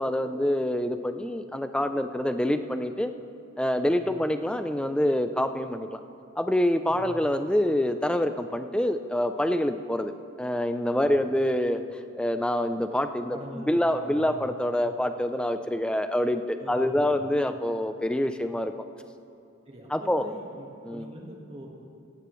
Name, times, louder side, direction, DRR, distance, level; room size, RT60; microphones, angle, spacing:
voice 1, 0.0-3.1 3.6-6.0 6.4-10.1 10.4-11.8 12.2-18.7 19.9-20.3 20.8-21.1, left 1 dB, 5° left, 9 dB, 0.4 m, -26 dB
voice 2, 6.9-7.2 11.0-11.2 13.3-14.4 14.8-14.9 16.6-17.2 19.7-21.7, right 1 dB, 30° right, -1 dB, 1.5 m, -43 dB
16.0 x 15.5 x 3.1 m, 2.6 s
head